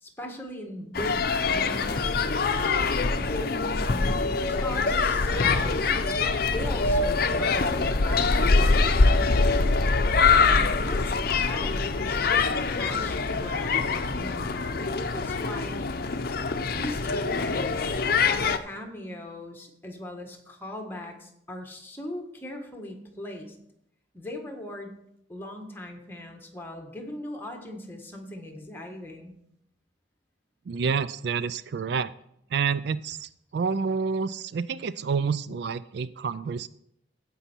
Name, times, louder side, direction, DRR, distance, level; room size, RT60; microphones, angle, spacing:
voice 1, 0.0-2.7 3.2-6.2 6.5-9.6 10.3-14.5 14.8-15.9 16.7-18.0 18.5-23.5 24.1-24.9 25.3-29.3, left 1 dB, 10° left, 2 dB, 1.5 m, -39 dB
sound 1, 0.9-18.6, left 4 dB, 55° left, 0.6 m, -24 dB
voice 2, 30.7-32.1 32.5-36.7, right 5 dB, 65° right, 16 dB, 0.4 m, -28 dB
15.5 x 5.5 x 4.5 m, 0.75 s
head